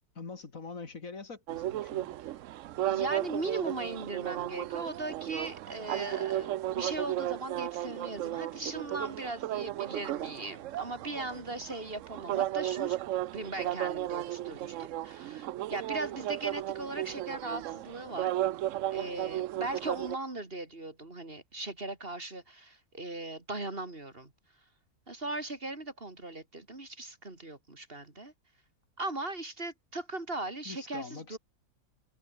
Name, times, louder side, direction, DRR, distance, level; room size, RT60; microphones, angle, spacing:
voice 1, 0.1-2.1 30.6-31.4, left 4 dB, 60° left, 2.8 m, -44 dB
sound 1, 1.5-20.2, right 14 dB, 65° right, 0.8 m, -34 dB
voice 2, 2.8-13.0 13.3-18.3 18.9-24.3 25.1-28.3 29.0-31.4, right 2 dB, 40° right, 3.4 m, -39 dB
omnidirectional pair, 1.6 m